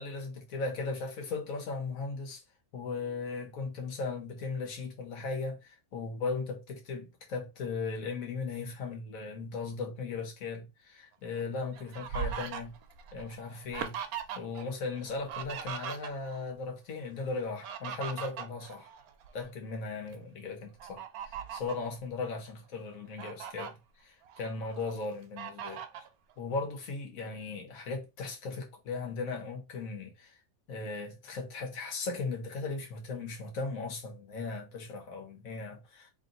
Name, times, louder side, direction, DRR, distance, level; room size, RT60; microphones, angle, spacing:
voice 1, 0.0-2.4 2.7-12.7 13.1-14.0 14.3-18.9 19.3-23.8 24.0-25.8 26.4-30.3 30.7-36.1, left 4 dB, 70° left, 1.6 m, -37 dB
Fowl, 11.3-14.7 14.9-16.5 17.4-19.5 20.0-20.1 20.8-21.9 22.5-22.6 22.9-23.7 24.2-24.9 25.4-26.1, right 8 dB, 90° right, 1.1 m, -40 dB
3.1 x 3.0 x 3.9 m
omnidirectional pair, 1.5 m